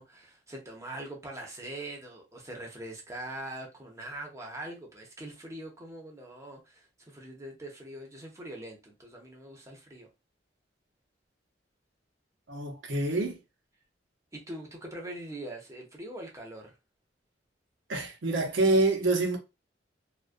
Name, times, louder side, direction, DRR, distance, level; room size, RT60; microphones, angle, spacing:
voice 1, 0.0-10.1 14.3-16.7, right 1 dB, 15° right, 0.6 m, -42 dB
voice 2, 12.5-13.4 17.9-19.4, right 2 dB, 90° right, 0.7 m, -26 dB
2.3 x 2.1 x 2.5 m
head